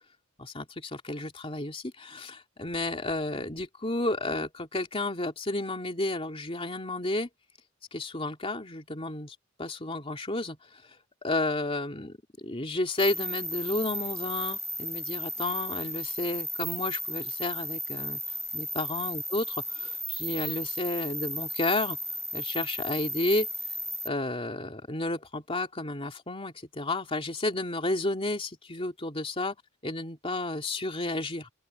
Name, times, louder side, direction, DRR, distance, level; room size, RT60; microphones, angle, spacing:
voice 1, 0.4-7.3 7.9-10.6 11.2-18.2 18.5-19.4 19.8-22.0 22.3-23.5 24.0-29.5 29.8-31.5, left 2 dB, 25° left, 2.9 m, -32 dB
sound 1, 13.0-24.1, equal, 15° right, 4.4 m, -35 dB
open air
head